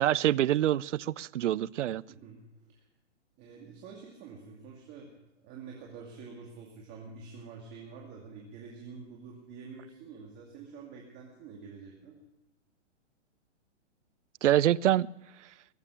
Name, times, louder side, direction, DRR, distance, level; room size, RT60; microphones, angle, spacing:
voice 1, 0.0-2.0 14.4-15.1, right 12 dB, 80° right, 0.5 m, -25 dB
voice 2, 2.1-2.4 2.7-2.8 3.4-5.1 5.4-12.1, right 5 dB, 30° right, 2.4 m, -47 dB
21.0 x 7.4 x 6.6 m
hypercardioid pair, 140°, 36 cm